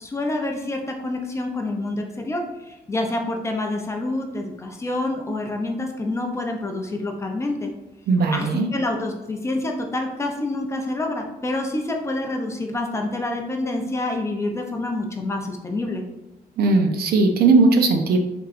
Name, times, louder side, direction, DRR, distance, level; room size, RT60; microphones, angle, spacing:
voice 1, 0.0-2.4 2.9-7.7 8.3-16.0, left 2 dB, 15° left, 2 dB, 0.5 m, -27 dB
voice 2, 8.1-8.7 16.6-18.2, right 3 dB, 70° right, 5 dB, 0.6 m, -18 dB
5.6 x 3.7 x 2.5 m, 0.99 s
cardioid pair, 180°, 17 cm